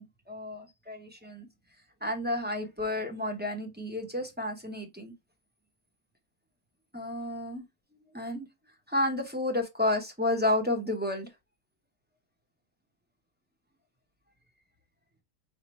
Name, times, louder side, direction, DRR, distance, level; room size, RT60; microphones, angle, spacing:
voice 1, 0.0-1.5 2.0-5.1 6.9-7.6 8.1-8.5 8.9-11.3, left 1 dB, 10° right, 0.6 m, -31 dB
5.0 x 2.8 x 3.1 m
omnidirectional pair, 1.5 m